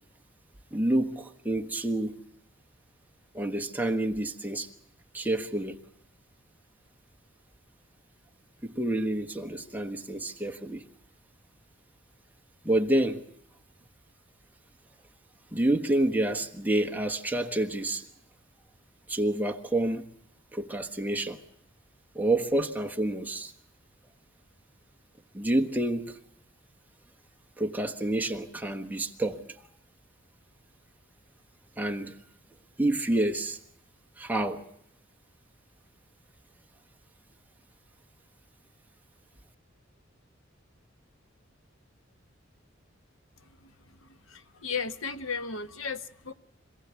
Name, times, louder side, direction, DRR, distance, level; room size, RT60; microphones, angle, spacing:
voice 1, 0.7-2.2 3.3-4.7 5.1-5.8 8.6-10.9 12.6-13.3 15.5-18.1 19.1-20.0 20.5-21.4 22.1-23.5 25.3-26.2 27.6-29.4 31.8-32.2 32.8-33.6 34.2-34.7, right 1 dB, 10° right, 1.3 m, -28 dB
voice 2, 44.3-46.3, left 5 dB, 85° left, 1.2 m, -34 dB
26.0 x 16.5 x 8.3 m
head